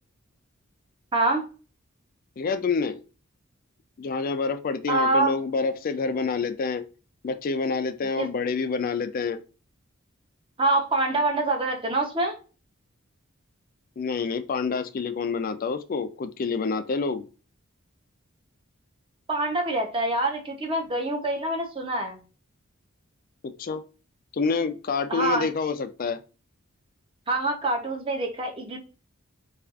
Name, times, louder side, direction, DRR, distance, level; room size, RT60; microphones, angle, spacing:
voice 1, 1.1-1.4 4.9-5.3 8.2-8.3 10.6-12.3 19.3-22.2 25.1-25.5 27.3-28.8, right 2 dB, 25° right, 2 dB, 0.7 m, -25 dB
voice 2, 2.4-3.0 4.0-6.8 7.2-9.4 14.0-17.3 23.4-23.8 24.3-26.2, left 4 dB, 40° left, 10 dB, 0.3 m, -27 dB
4.3 x 2.4 x 2.4 m, 0.35 s
head